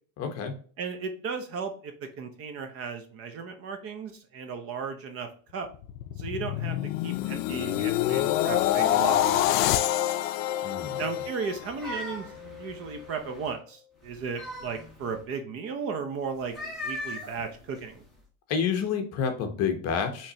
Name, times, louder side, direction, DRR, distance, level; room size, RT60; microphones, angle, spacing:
voice 1, 0.2-0.5 10.6-11.0 18.5-20.3, left 6 dB, 40° left, 5 dB, 0.9 m, -29 dB
voice 2, 0.8-5.7 6.2-6.8 7.0-9.8 11.0-16.5 16.8-18.0, right 5 dB, 35° right, 6 dB, 0.7 m, -35 dB
sound 1, 5.7-12.0 12.4-12.7, left 13 dB, 70° left, 0.5 m, -26 dB
sound 2, 11.5-13.6 14.0-15.2 16.4-18.2, left 1 dB, ahead, 1.3 m, -40 dB
5.5 x 3.2 x 2.8 m, 0.43 s
supercardioid pair, 150°, 41 cm